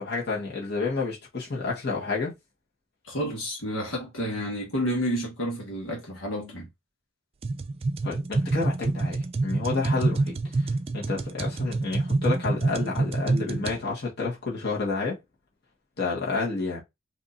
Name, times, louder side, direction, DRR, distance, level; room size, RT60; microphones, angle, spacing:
voice 1, 0.0-2.3 8.0-15.2 16.0-16.8, left 3 dB, 50° left, 1.7 m, -30 dB
voice 2, 3.0-6.7, equal, 70° left, 1.5 m, -30 dB
sound 1, 7.4-13.8, right 2 dB, 30° right, 0.3 m, -27 dB
4.8 x 2.9 x 2.5 m
head